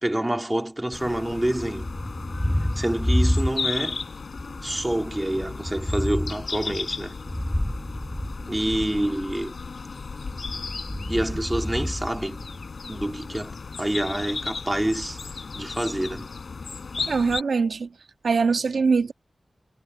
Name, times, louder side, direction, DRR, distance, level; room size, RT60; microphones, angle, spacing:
voice 1, 0.0-1.9 2.8-4.0 4.6-7.2 8.5-9.6 11.1-12.4 12.9-15.2 15.6-16.3, right 1 dB, 15° right, 3.0 m, -27 dB
sound 1, 0.9-17.4, left 4 dB, 70° left, 4.2 m, -35 dB
Thunder, 1.6-4.0 4.3-9.1 10.2-12.8, left 1 dB, 10° left, 7.6 m, -29 dB
voice 2, 17.1-17.9 18.2-19.1, right 5 dB, 85° right, 1.9 m, -22 dB
wide cardioid pair, 90°, 0 cm